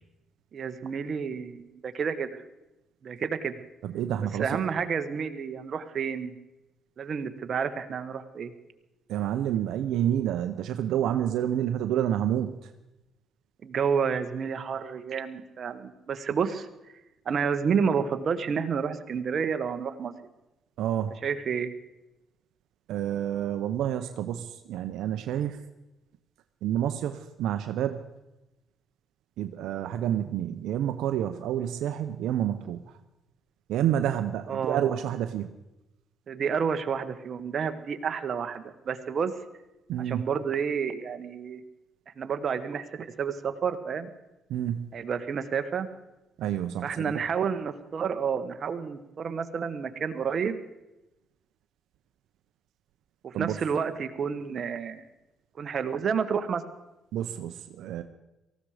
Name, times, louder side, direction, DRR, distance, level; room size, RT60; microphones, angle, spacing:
voice 1, 0.5-2.4 3.0-3.6 4.4-6.3 7.0-8.5 13.6-16.7 17.2-20.1 21.2-21.7 34.5-35.0 36.3-39.3 40.0-41.6 42.2-44.1 44.9-45.9 46.8-50.6 53.2-55.0 55.6-56.6, right 6 dB, 55° right, 8 dB, 1.3 m, -30 dB
voice 2, 3.8-4.7 9.1-12.6 20.8-21.1 22.9-25.6 26.6-28.0 29.4-32.8 33.7-35.5 39.9-40.2 44.5-44.9 46.4-47.2 53.3-53.5 57.1-58.0, right 10 dB, 85° right, 8 dB, 0.8 m, -29 dB
18.5 x 15.0 x 5.0 m, 0.97 s
cardioid pair, 90°, 0 cm